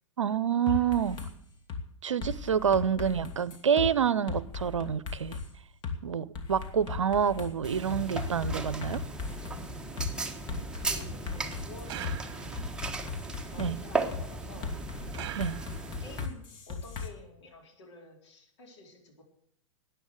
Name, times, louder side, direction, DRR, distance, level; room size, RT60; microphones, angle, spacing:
voice 1, 0.2-1.2 2.0-5.4 6.0-9.0 13.6-13.8 15.4-15.5, right 8 dB, 75° right, 0.7 m, -27 dB
sound 1, 0.7-1.3 1.7-1.8 2.2-3.9 4.3-5.5 5.8-6.0 6.3-9.6 10.0-10.1 10.5-12.2 12.6-13.7 14.1-14.2 14.6-17.1, left 5 dB, 30° left, 2.2 m, -37 dB
sound 2, 7.6-16.3, right 3 dB, 5° right, 1.3 m, -37 dB
voice 2, 10.5-12.5 13.4-14.8 15.4-15.6 16.0-19.2, left 3 dB, 60° left, 4.1 m, -51 dB
sound 3, 11.9-12.8 15.1-16.1, right 11 dB, 45° right, 1.2 m, -42 dB
13.5 x 9.4 x 8.0 m
figure-of-eight pair, 100°, 16 cm